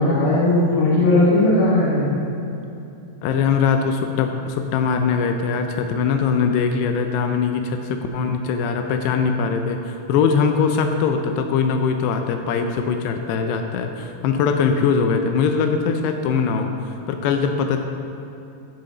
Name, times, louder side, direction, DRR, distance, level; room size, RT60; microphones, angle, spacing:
voice 1, 0.0-2.1, left 2 dB, 30° left, -8 dB, 2.1 m, -17 dB
voice 2, 3.2-17.8, left 5 dB, 85° left, 5 dB, 2.7 m, -21 dB
14.5 x 6.0 x 3.9 m, 2.8 s
omnidirectional pair, 4.8 m